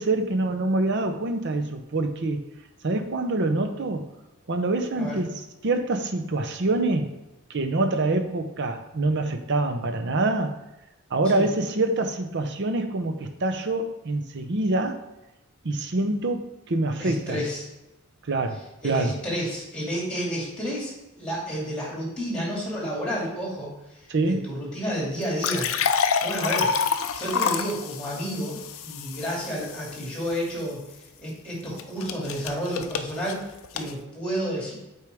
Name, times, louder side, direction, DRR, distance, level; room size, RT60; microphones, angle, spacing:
voice 1, 0.0-2.4 2.8-4.1 4.5-5.3 5.6-7.2 7.5-10.6 11.1-15.0 15.6-17.4 18.3-19.2 24.1-24.5, right 2 dB, 55° right, 6 dB, 0.7 m, -25 dB
voice 2, 17.0-17.7 18.8-20.9 21.2-23.7 24.2-26.7 27.1-30.8 31.2-33.4 33.7-34.7, equal, 5° left, -5 dB, 2.4 m, -30 dB
sound 1, 25.2-30.3 31.8-33.9, left 6 dB, 65° left, 0.5 m, -28 dB
8.0 x 4.6 x 3.5 m, 0.98 s
head